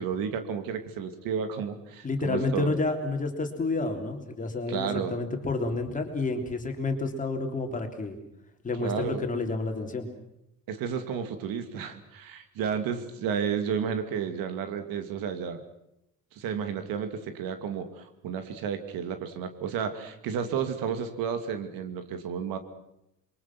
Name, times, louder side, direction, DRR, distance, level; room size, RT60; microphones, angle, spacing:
voice 1, 0.0-2.7 4.7-5.2 8.8-9.2 10.7-15.6 16.3-22.6, right 7 dB, 85° right, 8 dB, 2.7 m, -32 dB
voice 2, 2.0-8.2 8.6-10.1, left 3 dB, 25° left, 4 dB, 3.4 m, -30 dB
28.0 x 23.0 x 6.2 m, 0.82 s
cardioid pair, 145°, 34 cm